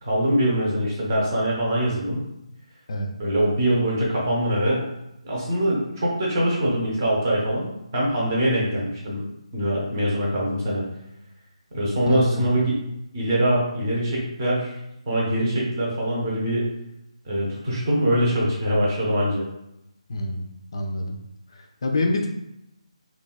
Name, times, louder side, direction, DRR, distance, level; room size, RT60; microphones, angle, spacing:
voice 1, 0.0-2.2 3.2-4.8 5.2-9.3 9.5-10.8 11.7-12.7 13.1-14.8 15.1-16.7 17.2-19.4, right 1 dB, 30° right, -4 dB, 0.7 m, -23 dB
voice 2, 12.1-12.4 20.1-20.4 20.7-21.2 21.5-22.3, left 2 dB, 45° left, 2 dB, 0.3 m, -26 dB
3.0 x 2.2 x 2.2 m, 0.86 s
figure-of-eight pair, 150°, 3 cm